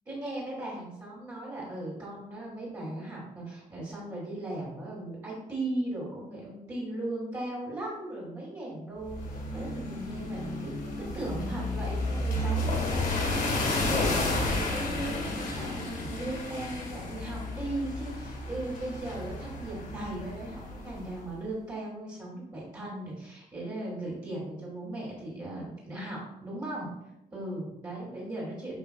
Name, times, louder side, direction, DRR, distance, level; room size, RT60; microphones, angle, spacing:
voice 1, 0.1-9.2 9.5-26.9 27.3-28.8, right 1 dB, 20° right, -7 dB, 2.8 m, -37 dB
sound 1, 9.0-21.2, left 2 dB, 60° left, 2.1 m, -32 dB
11.5 x 5.4 x 2.4 m, 0.86 s
wide cardioid pair, 175°, 16 cm